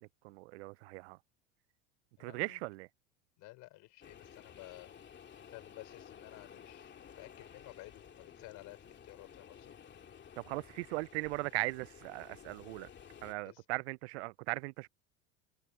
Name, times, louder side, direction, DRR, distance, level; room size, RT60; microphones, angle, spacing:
voice 1, 0.0-1.2 2.2-2.9 10.4-12.9 13.2-14.9, right 23 dB, 70° right, 0.5 m, -39 dB
voice 2, 2.2-2.6 3.4-5.0 5.5-9.7 13.4-13.6, left 20 dB, 60° left, 5.4 m, -53 dB
sound 1, 4.0-13.3, left 8 dB, 30° left, 2.5 m, -54 dB
open air
hypercardioid pair, 85°, 35 cm